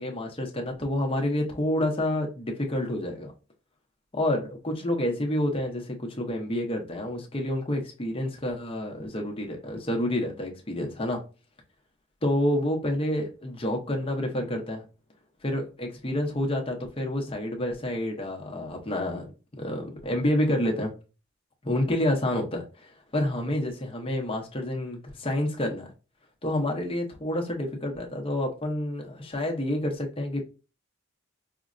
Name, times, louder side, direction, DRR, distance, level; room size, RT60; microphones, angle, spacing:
voice 1, 0.0-3.3 4.1-11.2 12.2-14.8 15.4-19.3 19.6-20.9 21.6-25.9 26.4-30.5, left 1 dB, 25° left, 0.6 m, -28 dB
5.0 x 2.0 x 2.4 m
head